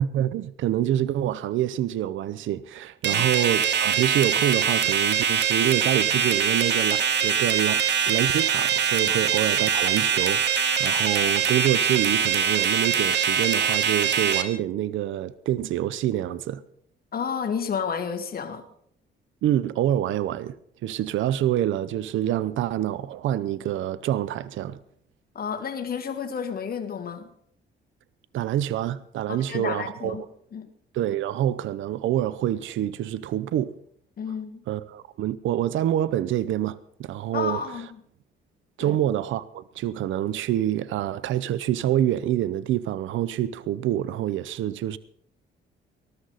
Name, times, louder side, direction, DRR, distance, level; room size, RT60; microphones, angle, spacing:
voice 1, 0.0-16.6 19.4-20.6 20.8-24.8 28.3-30.2 30.9-33.7 34.7-37.6 38.8-45.0, right 12 dB, 75° right, 0.7 m, -26 dB
sound 1, 3.0-14.4, right 7 dB, 60° right, 1.9 m, -23 dB
voice 2, 17.1-18.6 25.4-27.3 29.3-30.2 30.5-30.7 34.2-34.6 37.3-38.0 38.8-39.0, left 6 dB, 50° left, 1.9 m, -31 dB
19.5 x 13.0 x 4.0 m
cardioid pair, 90°, 20 cm